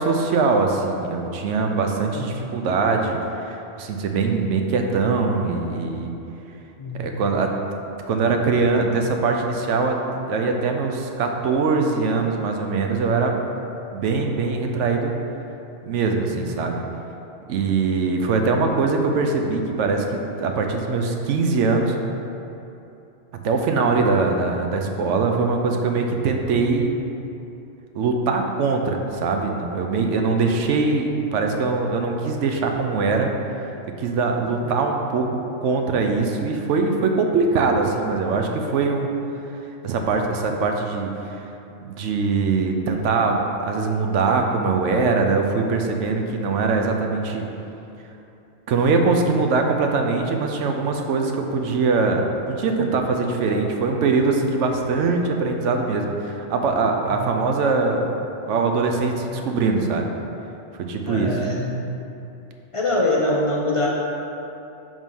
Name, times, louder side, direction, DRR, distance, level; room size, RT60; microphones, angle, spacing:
voice 1, 0.0-6.1 7.0-7.5 8.1-10.0 10.3-13.4 13.9-15.1 15.8-16.8 17.5-22.0 23.4-27.0 27.9-33.3 34.0-39.1 39.8-41.1 41.8-47.4 48.7-58.2 58.4-60.1 60.8-61.3, right 4 dB, 80° right, 3 dB, 0.9 m, -22 dB
voice 2, 2.1-2.4 6.8-7.1 16.3-16.5 57.1-57.2 61.1-61.7 62.7-63.9, left 2 dB, 55° left, -4 dB, 0.3 m, -24 dB
5.1 x 3.6 x 5.4 m, 2.9 s
omnidirectional pair, 1.3 m